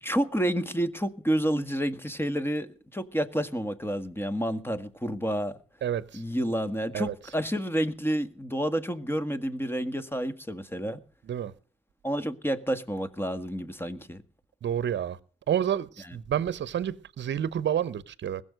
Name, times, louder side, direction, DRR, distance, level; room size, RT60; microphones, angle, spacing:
voice 1, 0.0-5.6 6.1-11.0 12.0-14.2 16.1-16.2, equal, 10° left, 1.8 m, -29 dB
voice 2, 5.8-6.2 6.9-7.1 11.2-11.5 14.6-15.2 15.5-18.4, right 9 dB, 60° right, 0.9 m, -29 dB
20.5 x 7.2 x 6.4 m
hypercardioid pair, 40°, 21 cm